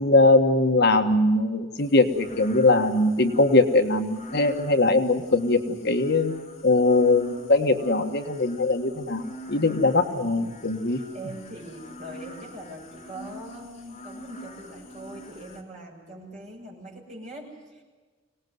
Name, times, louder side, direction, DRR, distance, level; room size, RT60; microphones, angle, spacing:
voice 1, 0.0-6.4 6.6-9.2 9.5-11.0, left 2 dB, 50° left, 5 dB, 1.5 m, -21 dB
sound 1, 1.8-15.6, equal, 30° left, 3.2 m, -44 dB
voice 2, 9.9-10.4 10.9-17.8, right 1 dB, 35° right, -2 dB, 7.0 m, -42 dB
25.0 x 19.0 x 9.5 m, 1.3 s
head